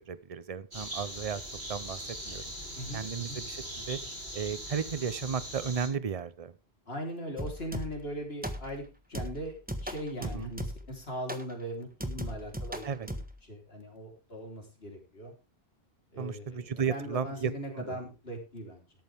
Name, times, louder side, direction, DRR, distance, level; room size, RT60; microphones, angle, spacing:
voice 1, 0.0-1.4 1.7-2.4 2.9-4.0 4.3-6.5 10.2-10.5 12.8-13.1 16.2-18.0, right 6 dB, 35° right, 16 dB, 0.8 m, -34 dB
sound 1, 0.7-5.9, equal, 70° right, 7.4 m, -41 dB
voice 2, 2.8-3.4 6.9-8.8 9.1-15.3 16.1-18.8, equal, 65° left, 2 dB, 4.1 m, -40 dB
sound 2, 7.4-8.1 8.4-8.9 9.1-11.0 11.3-11.5 12.0-13.4, equal, 10° right, 1.4 m, -38 dB
13.5 x 12.0 x 3.5 m, 0.30 s
omnidirectional pair, 1.1 m